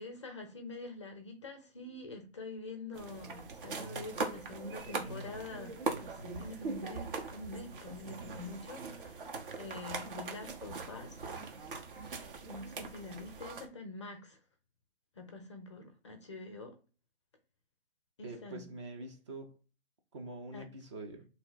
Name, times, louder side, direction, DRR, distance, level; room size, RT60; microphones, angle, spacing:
voice 1, 0.0-11.2 11.5-11.7 12.5-14.4 15.2-16.7 18.2-18.7 20.5-20.6, left 2 dB, 25° left, 0.4 m, -46 dB
sound 1, 2.9-13.7, right 4 dB, 50° right, 0.8 m, -41 dB
voice 2, 18.2-19.6 20.1-21.3, right 2 dB, 25° right, 0.5 m, -45 dB
2.7 x 2.1 x 3.8 m
figure-of-eight pair, 140°, 34 cm